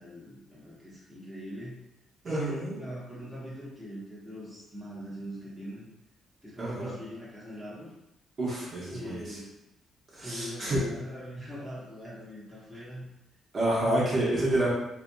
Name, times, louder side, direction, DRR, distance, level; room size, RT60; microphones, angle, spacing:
voice 1, 0.0-1.8 2.2-5.9 6.4-7.9 8.9-9.6 10.2-13.1 13.8-13.9, equal, 5° right, -8 dB, 1.0 m, -41 dB
voice 2, 2.2-2.8 6.6-6.9 8.4-9.4 10.1-10.9 13.5-14.7, right 1 dB, 45° right, -6 dB, 1.0 m, -28 dB
2.7 x 2.4 x 2.2 m, 0.87 s
cardioid pair, 90°, 0 cm